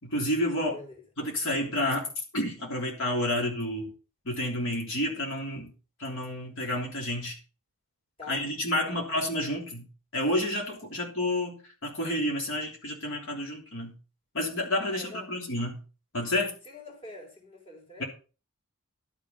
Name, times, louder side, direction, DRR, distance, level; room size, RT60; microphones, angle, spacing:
voice 1, 0.0-0.8 1.2-2.1 2.3-3.9 4.2-5.7 6.0-7.4 8.3-9.9 10.1-11.6 11.8-13.9 14.3-15.8 16.1-16.5 18.0-18.1, left 1 dB, 60° left, 3.3 m, -30 dB
voice 2, 0.7-1.0 8.2-8.4 8.7-9.1 14.9-15.3 16.7-18.0, left 2 dB, 25° left, 3.7 m, -45 dB
12.0 x 7.1 x 5.2 m
head